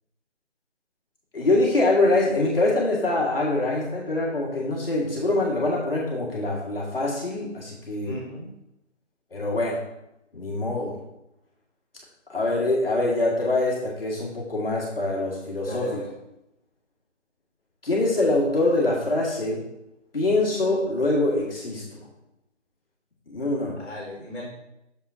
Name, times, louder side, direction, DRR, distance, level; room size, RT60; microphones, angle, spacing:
voice 1, 1.3-8.2 9.3-9.8 10.3-10.9 12.3-16.0 17.8-19.6 20.1-22.0 23.3-23.8, left 2 dB, 50° left, -4 dB, 1.9 m, -24 dB
voice 2, 8.0-8.5 15.6-16.1 23.8-24.4, left 1 dB, 5° left, -22 dB, 2.3 m, -35 dB
7.3 x 6.9 x 2.7 m, 0.87 s
figure-of-eight pair, 175°, 37 cm